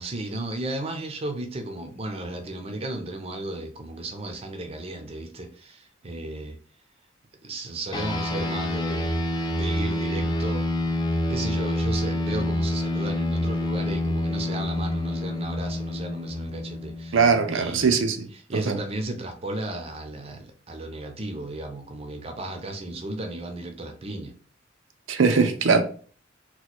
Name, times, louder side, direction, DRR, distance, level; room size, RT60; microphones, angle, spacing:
voice 1, 0.0-6.6 7.4-9.1 9.6-10.7 11.3-17.2 17.5-18.0 18.5-24.3, right 2 dB, 30° right, 0.5 m, -34 dB
sound 1, 7.9-17.7, left 1 dB, 20° left, 0.3 m, -27 dB
voice 2, 17.1-18.3 18.5-18.8 25.1-25.8, right 5 dB, 75° right, 0.5 m, -21 dB
3.0 x 2.2 x 4.2 m
head